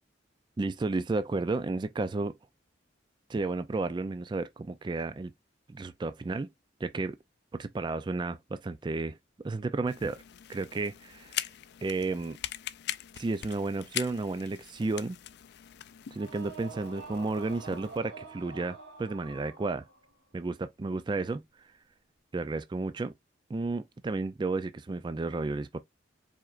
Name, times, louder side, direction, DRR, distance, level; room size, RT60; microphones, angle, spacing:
voice 1, 0.6-2.4 3.3-5.3 5.7-6.5 6.8-7.2 7.5-10.2 10.5-11.4 11.8-12.4 13.2-15.2 16.1-19.9 20.3-21.7 22.3-23.1 23.5-25.8, right 3 dB, 25° right, 0.3 m, -32 dB
gun reload-A, 9.9-18.0, left 13 dB, 65° left, 0.4 m, -41 dB
sound 1, 16.1-20.1, right 4 dB, 70° right, 1.9 m, -46 dB
4.8 x 4.3 x 2.4 m
head